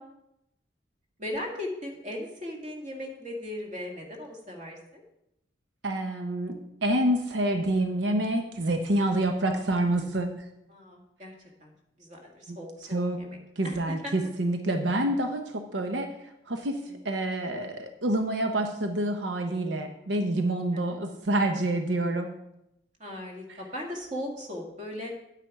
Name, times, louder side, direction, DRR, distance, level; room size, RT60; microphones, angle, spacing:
voice 1, 1.2-5.0 10.7-11.3 11.6-11.7 12.0-13.4 13.6-14.1 16.9-17.0 20.7-20.8 23.0-25.1, left 1 dB, 45° right, 1 dB, 2.0 m, -38 dB
voice 2, 5.8-10.3 12.5-12.6 12.9-13.2 13.6-16.1 16.5-22.3, right 1 dB, 90° right, 5 dB, 0.8 m, -27 dB
9.2 x 8.6 x 4.7 m, 0.83 s
head